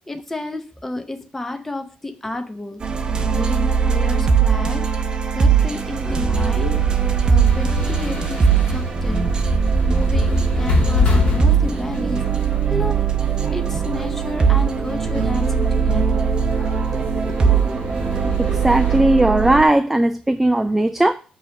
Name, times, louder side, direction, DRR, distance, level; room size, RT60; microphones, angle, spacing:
voice 1, 0.1-2.8 3.3-8.5 8.7-9.3 9.9-12.2 12.7-13.0 13.5-16.3 17.2-17.7, left 2 dB, 10° left, 0.7 m, -31 dB
sound 1, 2.8-19.6, right 7 dB, 30° right, 0.7 m, -20 dB
sound 2, 6.0-19.0, left 2 dB, 45° left, 2.6 m, -26 dB
voice 2, 18.4-21.1, right 1 dB, 10° right, 0.3 m, -17 dB
7.5 x 3.2 x 6.1 m
cardioid pair, 145°, 3 cm